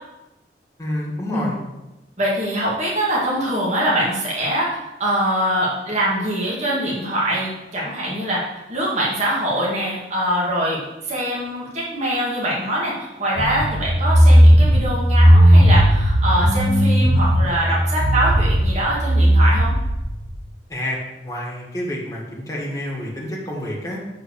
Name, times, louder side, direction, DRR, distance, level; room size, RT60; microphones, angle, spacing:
voice 1, 0.8-1.6 20.7-21.0 21.2-24.0, left 1 dB, 20° left, -4 dB, 2.1 m, -28 dB
voice 2, 2.2-8.4 8.7-19.7, right 1 dB, 40° right, -6 dB, 2.3 m, -23 dB
sound 1, 13.4-20.3, equal, 20° right, 2.8 m, -15 dB
8.3 x 4.5 x 6.7 m, 0.98 s
head